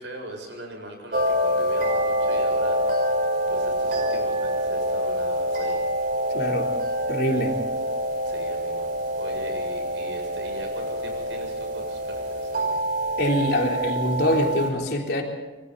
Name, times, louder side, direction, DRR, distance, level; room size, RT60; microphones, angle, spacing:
voice 1, 0.0-5.8 8.2-8.9 9.2-12.8, equal, 85° right, 3 dB, 7.2 m, -40 dB
sound 1, 1.1-14.7, equal, 50° right, 4.8 m, -26 dB
voice 2, 6.3-6.7 7.1-7.6 13.2-15.2, left 1 dB, 60° left, 0 dB, 3.8 m, -24 dB
27.0 x 23.0 x 4.2 m, 1.2 s
head